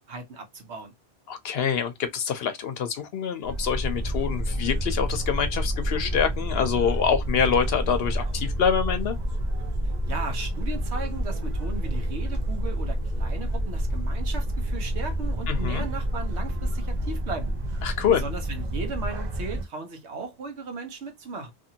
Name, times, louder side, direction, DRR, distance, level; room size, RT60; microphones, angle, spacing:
voice 1, 0.1-0.9 10.1-17.5 18.1-21.5, right 3 dB, 70° right, 1.1 m, -36 dB
voice 2, 1.3-9.2 15.5-15.9 17.8-18.2, left 7 dB, 65° left, 0.7 m, -26 dB
sound 1, 3.4-19.6, equal, 45° right, 0.7 m, -28 dB
2.7 x 2.6 x 2.7 m
omnidirectional pair, 1.2 m